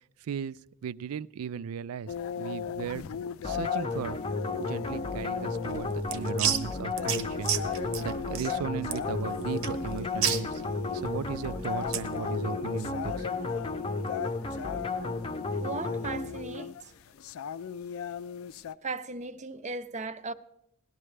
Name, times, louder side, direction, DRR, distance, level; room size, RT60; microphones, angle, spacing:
voice 1, 0.2-0.6 0.8-3.0 3.4-4.2 4.6-10.6 10.9-13.3, right 7 dB, 85° right, 0.4 m, -36 dB
sound 1, 2.1-18.7, left 8 dB, 70° left, 0.4 m, -38 dB
sound 2, 3.4-16.8, left 3 dB, 25° left, 0.7 m, -34 dB
sound 3, 5.6-12.2, right 9 dB, 70° right, 0.9 m, -33 dB
voice 2, 15.6-16.7 18.8-20.3, right 3 dB, 35° right, 0.6 m, -36 dB
18.0 x 12.0 x 3.3 m
head